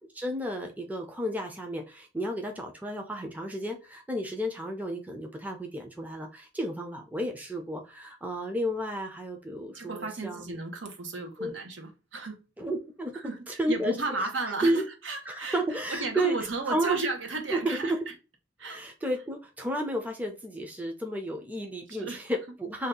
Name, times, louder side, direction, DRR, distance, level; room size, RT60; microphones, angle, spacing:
voice 1, 0.1-10.6 11.4-11.5 12.6-14.9 15.3-17.0 17.3-18.1 18.7-22.9, right 1 dB, 10° right, 0.5 m, -32 dB
voice 2, 9.7-12.4 13.1-15.6 15.9-17.9 18.6-18.8 22.0-22.2, right 3 dB, 80° right, 0.9 m, -34 dB
2.7 x 2.3 x 3.6 m
head